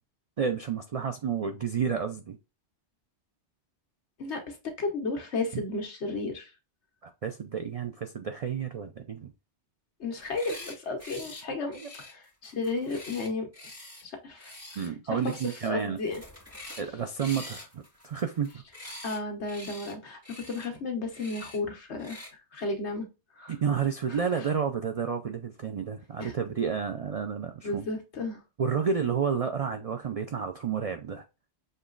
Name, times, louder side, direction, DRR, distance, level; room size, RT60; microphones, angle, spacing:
voice 1, 0.4-2.4 5.5-5.6 7.0-9.3 11.8-11.9 14.8-16.0 16.8-19.0 23.5-27.9 28.6-31.2, right 7 dB, 65° right, 0.3 m, -31 dB
voice 2, 4.2-6.5 10.0-13.5 14.0-15.2 15.7-16.2 19.0-20.2 20.5-22.2 22.5-23.1 23.4-23.5 24.1-24.2 26.2-26.3 27.6-28.4, left 3 dB, 70° left, 1.4 m, -33 dB
sound 1, 10.2-10.7 11.0-11.4 11.7-14.0 14.4-14.9 15.2-15.7 16.0-16.9 17.2-19.2 19.5-19.9 20.2-20.7 21.1-21.6 22.0-22.3, left 1 dB, 10° right, 1.6 m, -45 dB
6.6 x 3.0 x 2.4 m
omnidirectional pair, 1.2 m